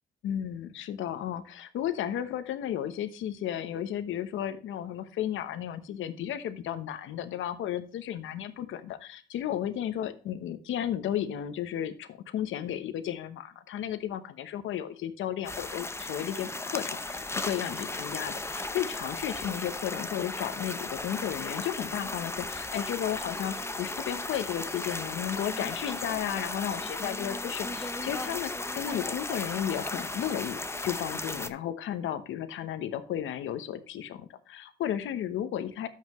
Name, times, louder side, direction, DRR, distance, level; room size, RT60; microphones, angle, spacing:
voice 1, 0.2-35.9, left 10 dB, 80° left, 11 dB, 1.0 m, -34 dB
sound 1, 15.4-31.5, left 2 dB, 15° left, 0.8 m, -36 dB
13.0 x 5.7 x 3.1 m, 0.40 s
cardioid pair, 90°, 20 cm